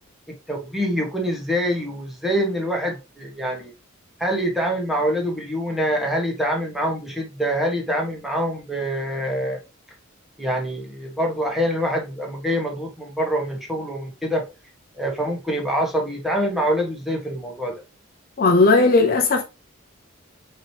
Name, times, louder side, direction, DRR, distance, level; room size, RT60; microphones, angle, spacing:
voice 1, 0.5-3.7 4.2-9.6 10.4-14.4 15.0-17.8, equal, ahead, 1.1 m, -25 dB
voice 2, 18.4-19.4, left 3 dB, 45° left, 0.6 m, -16 dB
4.8 x 3.0 x 2.8 m
head